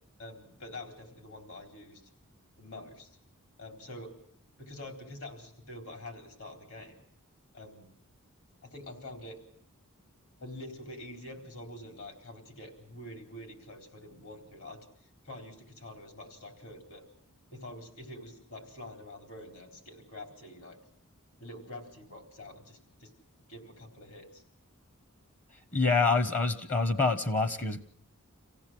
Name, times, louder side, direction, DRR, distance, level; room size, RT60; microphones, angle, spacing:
voice 1, 0.2-2.0 2.6-3.2 3.6-4.1 4.6-7.0 7.5-7.9 8.6-9.4 10.4-14.8 15.2-17.0 17.5-20.8 21.4-23.1 23.5-24.4, left 1 dB, 70° left, 4 dB, 4.2 m, -46 dB
voice 2, 25.7-27.8, left 3 dB, 35° left, 11 dB, 0.8 m, -26 dB
26.5 x 16.5 x 7.6 m, 0.67 s
head